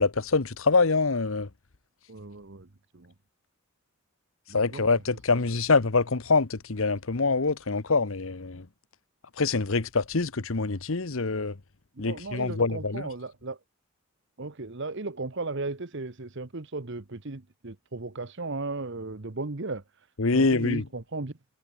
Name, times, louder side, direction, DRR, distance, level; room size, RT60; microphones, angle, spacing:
voice 1, 0.0-1.5 4.5-8.6 9.4-11.5 12.0-13.1 20.2-20.8, left 4 dB, 65° left, 1.0 m, -25 dB
voice 2, 2.1-3.1 4.5-4.9 5.3-5.5 11.9-13.6 14.4-21.4, right 3 dB, 55° right, 1.1 m, -36 dB
head